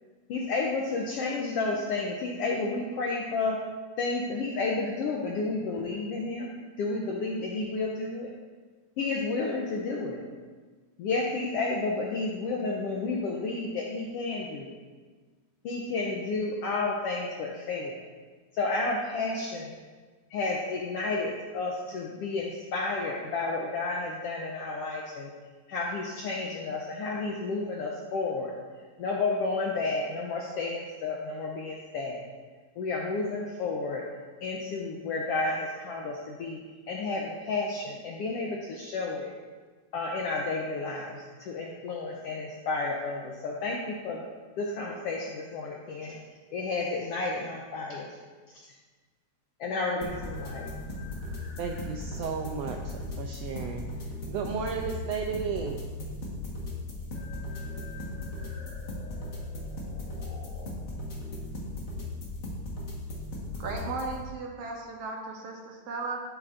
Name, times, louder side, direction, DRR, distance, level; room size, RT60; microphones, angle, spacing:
voice 1, 0.3-3.6 4.0-8.3 9.0-10.2 11.0-14.7 15.6-18.0 18.5-19.7 20.3-25.3 25.7-28.5 29.0-32.2 32.8-34.1 34.4-36.6 36.9-39.3 39.9-44.2 44.6-46.2 46.5-48.1 49.6-50.7, left 3 dB, 75° left, -1 dB, 1.4 m, -31 dB
sound 1, 50.0-64.1, left 2 dB, 40° left, 1.2 m, -37 dB
voice 2, 51.6-53.8 54.3-55.9, right 6 dB, 80° right, 3 dB, 1.5 m, -34 dB
voice 3, 63.6-66.2, right 3 dB, 65° right, 0 dB, 1.8 m, -36 dB
12.0 x 7.3 x 2.6 m, 1.4 s
omnidirectional pair, 3.4 m